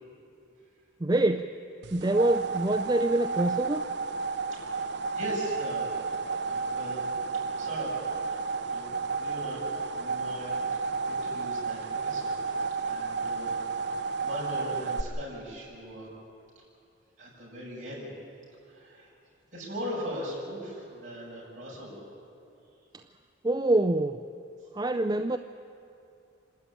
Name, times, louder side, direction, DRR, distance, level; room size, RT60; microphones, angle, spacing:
voice 1, 1.0-1.5 1.9-3.8 23.4-24.2 24.7-25.4, right 2 dB, 20° right, 6 dB, 0.4 m, -25 dB
sound 1, 1.8-15.0, right 4 dB, 55° right, 0.7 m, -32 dB
voice 2, 5.1-5.9 6.4-7.1 7.4-8.0 8.3-8.4 8.7-12.4 12.8-16.1 17.2-18.1 18.6-19.1 19.5-22.0, equal, 35° right, -6 dB, 7.6 m, -40 dB
26.5 x 13.0 x 9.9 m, 2.6 s
head